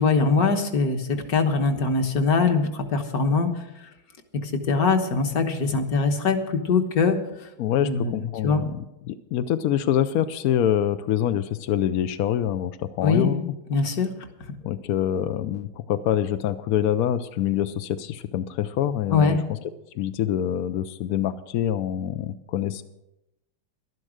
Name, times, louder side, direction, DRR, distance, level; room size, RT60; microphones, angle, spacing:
voice 1, 0.0-3.6 4.4-7.5 7.8-8.6 13.0-14.1 19.1-19.4, left 4 dB, 55° left, 6 dB, 1.6 m, -22 dB
voice 2, 7.6-8.8 9.1-13.4 14.6-19.4 19.9-22.8, left 10 dB, 75° left, 10 dB, 0.8 m, -25 dB
12.0 x 11.0 x 6.4 m, 0.90 s
omnidirectional pair, 2.1 m